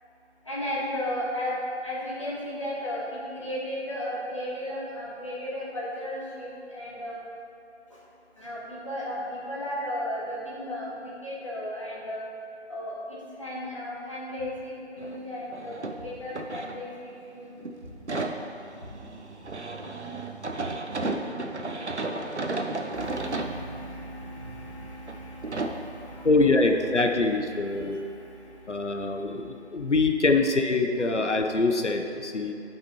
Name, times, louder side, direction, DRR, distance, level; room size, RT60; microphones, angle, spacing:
voice 1, 0.4-1.6 1.8-7.2 7.9-8.0 8.3-12.3 12.7-17.5 22.9-29.9, left 1 dB, 25° left, -8 dB, 1.5 m, -35 dB
sound 1, 14.4-14.7 15.8-16.3 17.8-18.2 18.8-19.2 23.2-23.3 23.5-23.9, equal, 15° right, 1.6 m, -48 dB
sound 2, 15.0-15.2 15.5-17.2 17.6-23.6 24.2-24.3 25.0-25.2 25.4-25.8 27.5-27.6 27.9-28.0, right 2 dB, 75° right, 0.8 m, -33 dB
voice 2, 26.2-28.0 28.7-32.5, left 3 dB, 85° left, 4 dB, 0.9 m, -24 dB
12.5 x 5.9 x 3.0 m, 2.6 s
figure-of-eight pair, 170°, 35 cm